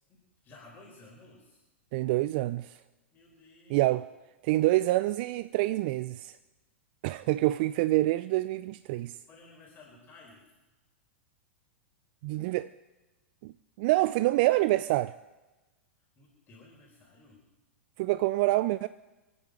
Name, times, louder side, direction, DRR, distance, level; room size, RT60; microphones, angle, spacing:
voice 1, 0.1-1.6 3.1-3.9 7.4-7.5 9.3-10.5 16.2-17.4, left 2 dB, 30° left, 4.5 m, -55 dB
voice 2, 1.9-2.8 3.7-4.1 4.4-6.4 7.0-9.2 12.2-12.7 13.4-15.1 18.0-18.9, right 17 dB, 50° right, 0.4 m, -26 dB
27.0 x 9.4 x 5.1 m
hypercardioid pair, 105°, 7 cm